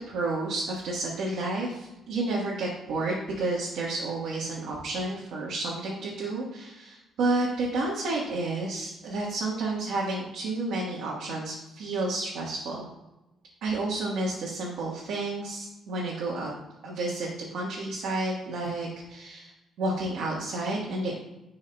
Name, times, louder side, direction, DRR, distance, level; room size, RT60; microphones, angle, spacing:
voice 1, 0.1-12.9 13.6-16.5 16.8-19.5 19.8-21.1, right 2 dB, 80° right, -4 dB, 1.4 m, -31 dB
10.5 x 4.7 x 2.3 m, 0.98 s
cardioid pair, 90°, 0 cm